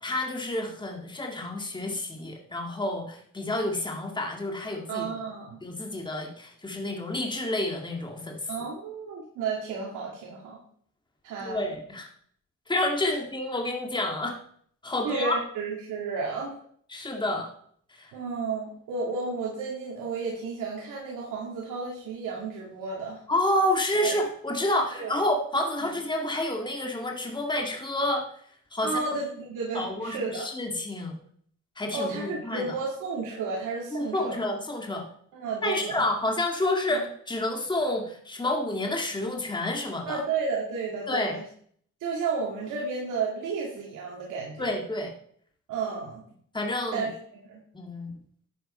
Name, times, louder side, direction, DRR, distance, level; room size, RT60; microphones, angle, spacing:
voice 1, 0.0-5.1 5.6-8.5 11.4-12.1 12.7-14.4 14.8-15.4 16.9-17.5 17.9-18.1 23.3-28.3 28.7-28.9 29.7-31.1 31.8-32.8 33.9-35.0 35.6-40.2 41.1-41.4 44.6-45.1 46.5-47.1 47.7-48.1, left 1 dB, 15° left, 2 dB, 2.2 m, -29 dB
voice 2, 4.9-5.6 8.5-10.6 11.2-11.7 15.0-16.6 18.1-23.2 24.0-24.2 24.9-25.1 25.8-25.9 28.8-30.5 31.9-34.4 35.3-36.1 36.9-37.0 40.1-41.4 42.0-44.8 45.7-46.2 46.9-47.6, right 4 dB, 85° right, -3 dB, 2.3 m, -32 dB
11.0 x 9.3 x 4.4 m, 0.62 s
cardioid pair, 90°, 30 cm